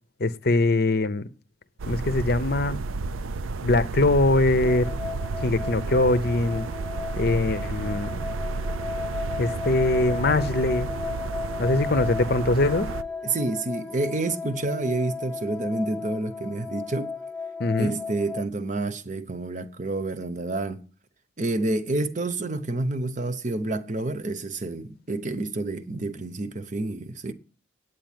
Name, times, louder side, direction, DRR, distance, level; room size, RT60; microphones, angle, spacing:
voice 1, 0.2-1.3 1.9-2.8 3.6-4.9 5.4-6.7 7.2-8.1 9.4-10.9 11.6-12.9 17.6-18.0, left 2 dB, 50° left, 0.7 m, -22 dB
sound 1, 1.8-13.0, right 4 dB, 90° right, 0.5 m, -32 dB
sound 2, 4.6-18.5, left 4 dB, ahead, 0.8 m, -35 dB
voice 2, 13.2-17.2 17.8-20.8 21.4-27.3, right 2 dB, 40° right, 0.8 m, -29 dB
9.1 x 8.4 x 8.9 m
head